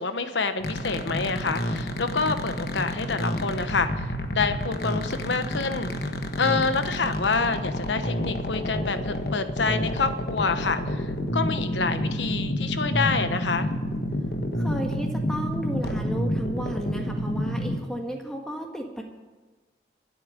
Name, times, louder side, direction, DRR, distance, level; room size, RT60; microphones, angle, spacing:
voice 1, 0.0-5.9 6.4-11.1 11.3-13.7, left 4 dB, 80° left, 9 dB, 1.1 m, -27 dB
sound 1, 0.6-17.8, equal, 55° left, 1.4 m, -29 dB
voice 2, 14.6-19.0, right 1 dB, 5° left, 2 dB, 1.7 m, -33 dB
25.0 x 8.5 x 5.2 m, 1.3 s
head